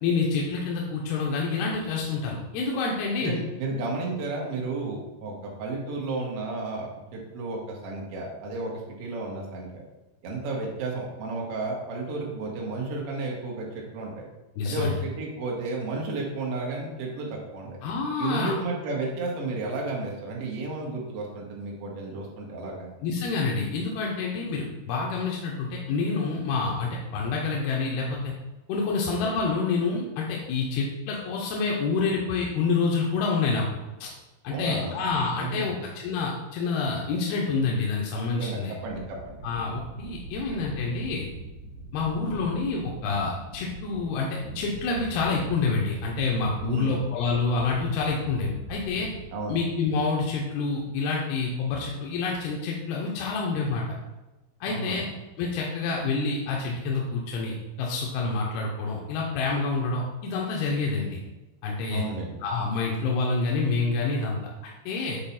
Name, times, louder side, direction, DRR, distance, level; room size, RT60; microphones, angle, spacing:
voice 1, 0.0-3.3 14.6-15.0 17.8-18.6 23.0-28.3 28.7-33.7 34.0-34.1 34.4-38.7 39.4-41.3 41.9-49.1 49.5-54.0 54.6-55.1 55.4-61.2 61.6-62.0 62.4-65.2, left 4 dB, 80° left, -2 dB, 2.7 m, -27 dB
voice 2, 3.2-6.9 7.1-9.8 10.2-14.1 14.6-17.8 18.2-22.9 34.5-35.0 35.4-35.8 38.3-39.4 46.6-47.1 49.3-49.6 54.7-55.1 61.9-62.4, right 3 dB, 70° right, -2 dB, 1.4 m, -32 dB
sound 1, 38.8-49.9, right 2 dB, 50° right, 3.4 m, -41 dB
7.8 x 4.1 x 5.7 m, 1.1 s
omnidirectional pair, 4.7 m